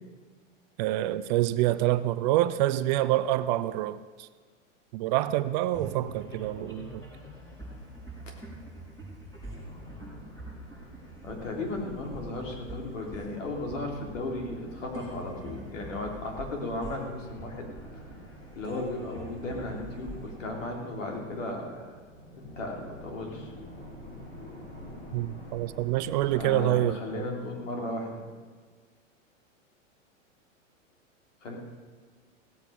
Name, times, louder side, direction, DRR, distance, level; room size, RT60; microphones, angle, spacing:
voice 1, 0.8-4.3 4.9-7.0 25.1-27.3, right 14 dB, 35° right, 14 dB, 0.5 m, -27 dB
sound 1, 5.7-21.4, right 1 dB, 10° left, 5.5 m, -45 dB
sound 2, 9.5-28.0, left 1 dB, 30° left, 4.5 m, -48 dB
voice 2, 11.2-17.7 17.9-18.0 18.5-22.0 22.3-23.5 26.4-28.3 31.4-31.6, left 2 dB, 75° left, 1 dB, 3.5 m, -35 dB
16.5 x 8.1 x 7.0 m, 1.5 s
hypercardioid pair, 115°, 39 cm